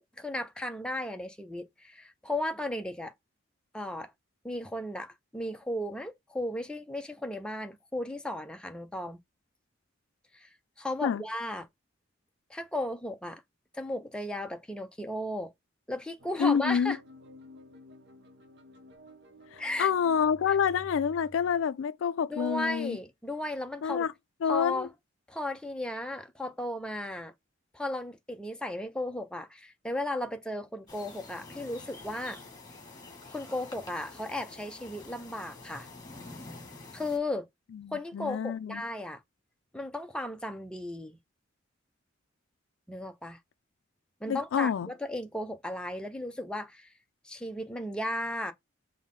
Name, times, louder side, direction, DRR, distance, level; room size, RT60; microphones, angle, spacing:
voice 1, 0.0-3.1 3.7-4.1 4.4-9.2 10.3-10.5 10.8-11.7 12.5-13.4 13.7-15.5 15.9-17.0 19.6-19.9 20.5-20.6 22.3-24.1 24.4-24.9 25.3-27.3 27.7-32.4 33.3-35.9 36.9-37.5 37.9-39.2 39.7-41.2 42.9-43.4 44.2-46.9 47.2-48.5, left 1 dB, 5° left, 0.5 m, -35 dB
sound 1, 16.2-21.7, left 1 dB, 60° right, 0.8 m, -52 dB
voice 2, 16.4-17.0 19.5-23.0 23.8-24.1 24.4-24.9 37.8-38.8 44.3-44.9, left 7 dB, 75° left, 0.3 m, -28 dB
sound 2, 30.9-37.2, left 3 dB, 20° left, 1.6 m, -47 dB
5.4 x 2.1 x 3.6 m
head